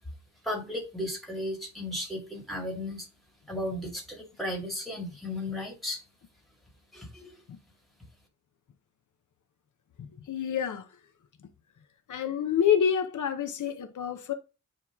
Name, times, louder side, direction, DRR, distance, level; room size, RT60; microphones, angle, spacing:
voice 1, 0.4-3.1 3.5-6.0 6.9-7.4, left 1 dB, ahead, 2.1 m, -35 dB
voice 2, 10.0-10.9 12.1-14.3, left 8 dB, 85° left, 0.8 m, -28 dB
8.9 x 3.1 x 3.6 m
wide cardioid pair, 155°, 29 cm